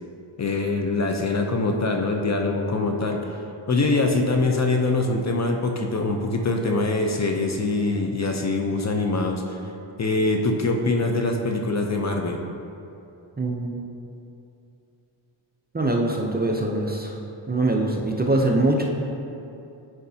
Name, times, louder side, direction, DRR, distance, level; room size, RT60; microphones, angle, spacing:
voice 1, 0.4-9.7 10.0-12.4, left 2 dB, 35° left, 3 dB, 0.6 m, -24 dB
voice 2, 13.4-13.8 15.7-17.2 17.5-18.9, right 2 dB, 20° right, 0 dB, 0.5 m, -23 dB
8.7 x 4.7 x 2.7 m, 2.8 s
cardioid pair, 75°, 49 cm